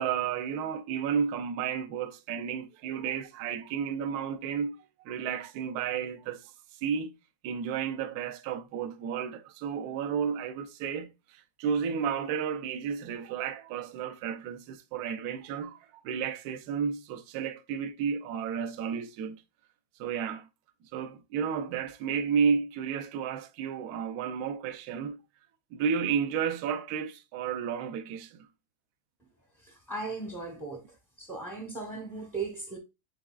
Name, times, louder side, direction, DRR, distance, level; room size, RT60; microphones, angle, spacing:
voice 1, 0.0-4.8 5.0-6.5 6.8-7.1 7.4-19.4 20.0-20.5 20.9-25.2 25.7-28.5, right 7 dB, 70° right, 1.0 m, -32 dB
voice 2, 29.6-30.8 31.2-32.8, right 3 dB, 5° left, 0.4 m, -37 dB
4.8 x 3.9 x 2.3 m
omnidirectional pair, 2.1 m